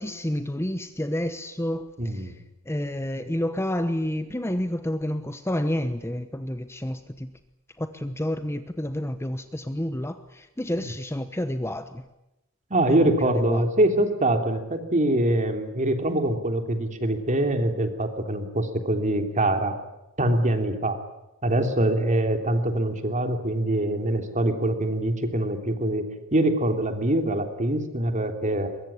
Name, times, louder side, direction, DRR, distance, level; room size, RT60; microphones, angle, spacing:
voice 1, 0.0-2.3 2.7-7.3 7.8-12.0 13.0-13.6, left 1 dB, 10° left, 10 dB, 1.0 m, -29 dB
voice 2, 2.0-2.3 12.7-19.8 20.2-21.0 21.4-26.0 26.3-28.7, right 1 dB, 35° right, 7 dB, 3.2 m, -24 dB
23.0 x 22.0 x 10.0 m, 0.91 s
head